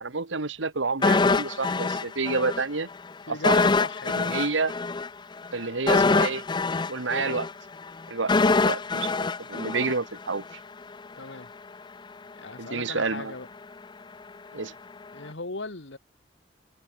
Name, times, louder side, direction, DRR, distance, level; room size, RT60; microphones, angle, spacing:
voice 1, 0.0-2.9 3.3-3.6 4.1-4.7 5.5-6.4 6.9-7.5 8.1-8.3 8.6-10.6 12.6-13.3 14.5-14.7, right 4 dB, 80° right, 1.4 m, -29 dB
sound 1, 1.0-2.6 2.9-3.1 3.4-10.5 10.8-11.0, left 3 dB, 25° left, 0.5 m, -24 dB
voice 2, 3.3-4.2 11.2-11.5 12.3-13.5 15.1-16.0, left 3 dB, 70° left, 1.8 m, -38 dB
head